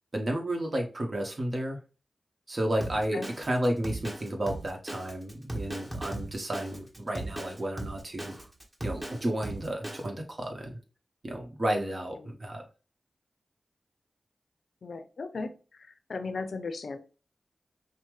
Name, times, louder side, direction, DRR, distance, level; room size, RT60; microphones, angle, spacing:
voice 1, 0.1-1.8 2.5-8.5 8.8-10.8 11.2-12.6, right 1 dB, 50° right, 1 dB, 1.2 m, -32 dB
Drum kit, 2.8-10.1, right 1 dB, 25° right, 1.4 m, -38 dB
voice 2, 14.8-15.5 16.1-17.0, left 4 dB, 80° left, 9 dB, 0.5 m, -36 dB
5.6 x 2.2 x 3.1 m, 0.34 s
cardioid pair, 40°, 0 cm